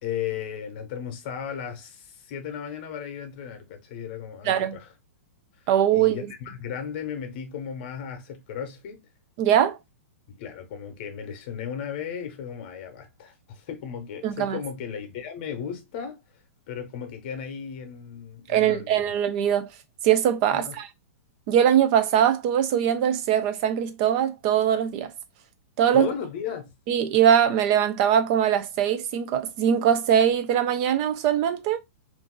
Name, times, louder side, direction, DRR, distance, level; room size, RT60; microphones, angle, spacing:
voice 1, 0.0-4.9 5.9-9.0 10.3-16.2 16.7-19.1 20.5-20.8 25.9-26.8, left 8 dB, 40° left, 0.8 m, -35 dB
voice 2, 4.4-4.8 5.7-6.3 9.4-9.8 14.2-14.6 18.5-19.7 20.0-20.9 21.5-25.1 25.8-26.1 26.9-31.8, right 9 dB, 35° right, 0.5 m, -22 dB
2.6 x 2.3 x 3.7 m
hypercardioid pair, 165°, 8 cm